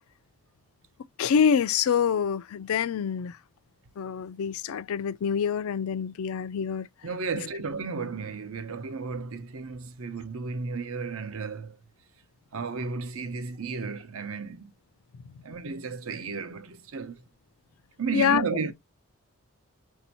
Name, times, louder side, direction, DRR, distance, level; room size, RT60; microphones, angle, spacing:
voice 1, 1.2-3.4 4.0-6.9 7.3-7.4 18.1-18.5, left 7 dB, 85° left, 0.4 m, -26 dB
voice 2, 7.0-11.8 12.5-14.7 15.4-17.2 18.0-18.7, right 5 dB, 80° right, 0.7 m, -33 dB
6.1 x 2.7 x 2.7 m
head